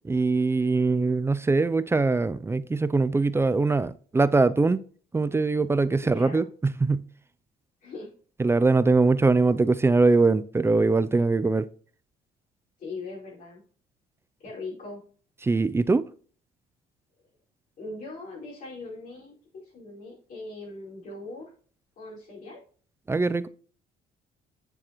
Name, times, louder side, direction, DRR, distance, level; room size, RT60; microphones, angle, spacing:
voice 1, 0.1-4.8 5.1-7.0 8.4-11.7 15.4-16.0 23.1-23.5, right 3 dB, 15° right, 0.4 m, -22 dB
voice 2, 6.0-6.4 7.8-8.1 12.8-13.6 14.4-15.0 17.8-21.5 22.0-22.6, left 2 dB, 55° left, 4.9 m, -40 dB
9.2 x 7.4 x 3.0 m
cardioid pair, 110°, 17 cm